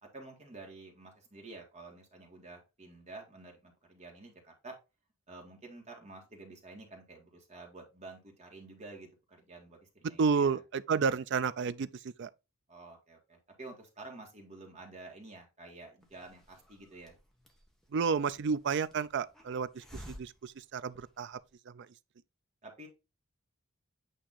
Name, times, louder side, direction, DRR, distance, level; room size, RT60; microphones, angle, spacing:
voice 1, 0.0-4.8 5.3-10.6 12.7-17.2 22.6-22.9, right 2 dB, 35° right, 1.6 m, -50 dB
voice 2, 10.2-11.9 12.2-12.3 17.9-21.4 21.7-21.9, right 5 dB, 55° right, 0.4 m, -31 dB
Hiss, 16.0-21.5, equal, ahead, 1.1 m, -55 dB
8.7 x 2.9 x 4.0 m
head